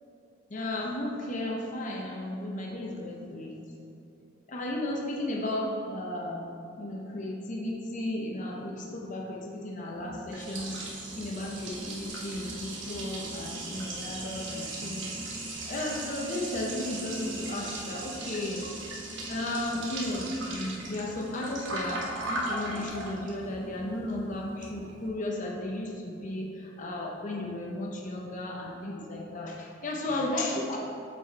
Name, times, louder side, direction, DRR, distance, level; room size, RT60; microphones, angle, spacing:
voice 1, 0.5-3.6 4.5-6.5 6.8-10.7 11.1-19.0 19.3-30.8, left 1 dB, 40° left, -2 dB, 0.7 m, -34 dB
Liquid, 9.9-25.1, right 2 dB, 65° right, 1.2 m, -38 dB
7.4 x 4.7 x 4.0 m, 2.7 s
head